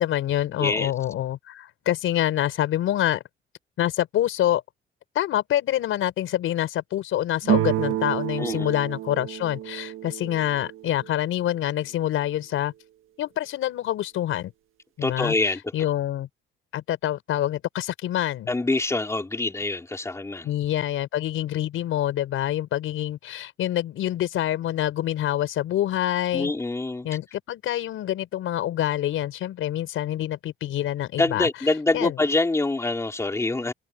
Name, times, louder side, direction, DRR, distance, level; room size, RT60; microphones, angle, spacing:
voice 1, 0.0-3.2 3.8-4.6 5.2-12.7 13.2-14.5 15.0-15.3 15.7-16.3 16.7-18.5 20.4-26.5 27.0-31.5 31.9-32.2, left 12 dB, 80° left, 5.5 m, -26 dB
voice 2, 0.6-0.9 8.4-8.7 15.0-15.7 18.5-20.5 26.3-27.1 31.2-33.7, left 2 dB, 15° left, 4.4 m, -25 dB
sound 1, 7.4-11.1, right 13 dB, 80° right, 1.9 m, -29 dB
cardioid pair, 140°, 21 cm